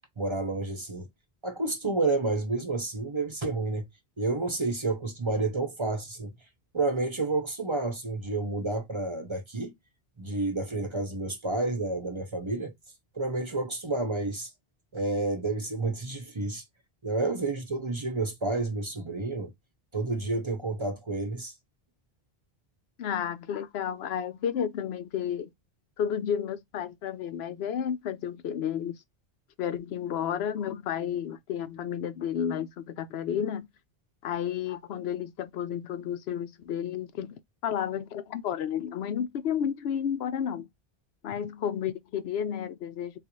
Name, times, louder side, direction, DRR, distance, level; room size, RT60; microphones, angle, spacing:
voice 1, 0.2-1.1 1.4-3.9 4.2-6.3 6.7-9.7 10.2-12.7 13.1-14.5 14.9-16.6 17.0-19.5 19.9-21.5, right 3 dB, 30° right, 0.7 m, -30 dB
voice 2, 23.0-25.5 26.0-29.0 29.6-33.7 34.2-40.7 41.2-43.2, left 8 dB, 85° left, 0.8 m, -32 dB
3.9 x 2.5 x 2.9 m
omnidirectional pair, 1.0 m